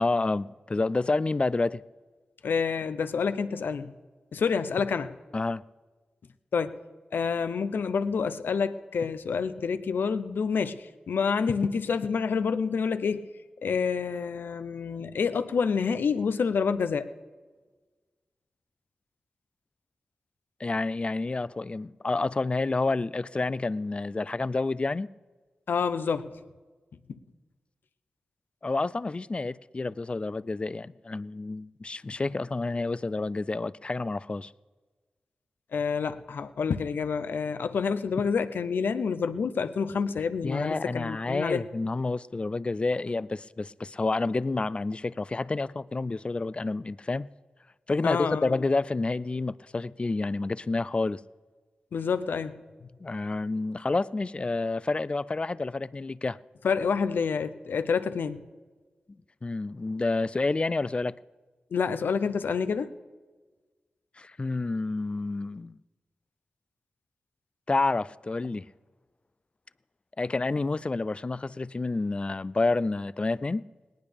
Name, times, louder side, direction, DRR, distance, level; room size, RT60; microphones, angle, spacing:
voice 1, 0.0-1.8 5.3-5.6 20.6-25.1 28.6-34.5 40.4-47.3 47.9-51.2 53.0-56.4 59.4-61.1 64.2-65.8 67.7-68.7 70.2-73.6, left 3 dB, 35° left, 0.4 m, -29 dB
voice 2, 2.4-3.9 4.3-5.1 6.5-6.8 7.1-13.3 13.6-17.1 25.7-26.3 35.7-41.6 48.0-48.5 51.9-52.6 56.6-58.4 61.7-62.9, left 5 dB, 85° left, 0.7 m, -28 dB
19.0 x 18.0 x 3.5 m
cardioid pair, 70°, 3 cm